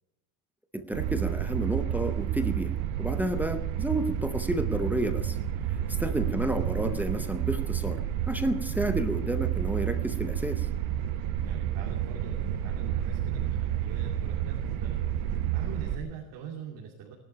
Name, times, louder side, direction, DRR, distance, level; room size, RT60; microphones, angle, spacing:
voice 1, 0.7-5.4 5.7-8.0 8.3-10.7, right 1 dB, 5° right, 7 dB, 0.6 m, -31 dB
sound 1, 0.9-16.0, right 10 dB, 70° right, 1.2 m, -30 dB
voice 2, 6.0-6.5 11.4-15.0 15.5-17.1, right 7 dB, 50° right, -1 dB, 2.8 m, -43 dB
18.5 x 11.5 x 5.8 m, 0.91 s
cardioid pair, 165°, 44 cm